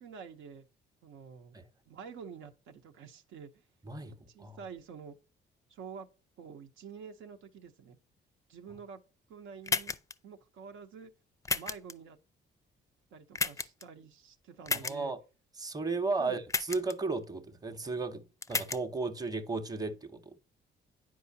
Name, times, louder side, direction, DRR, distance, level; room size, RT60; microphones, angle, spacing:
voice 1, 0.0-0.7 1.0-1.6 1.9-3.5 4.0-5.2 5.7-6.1 6.4-8.0 8.5-9.0 9.3-10.0 10.2-11.1 11.5-12.2 13.1-15.1 16.2-16.4, right 6 dB, 85° right, 0.8 m, -48 dB
sound 1, 9.7-10.1 11.4-11.9 13.3-13.8 14.7-14.9 16.5-16.9 18.4-18.8, left 4 dB, 15° left, 0.4 m, -32 dB
voice 2, 14.8-15.2 15.6-16.4 16.7-20.3, right 3 dB, 20° right, 0.8 m, -34 dB
9.3 x 4.8 x 2.7 m
cardioid pair, 90°, 20 cm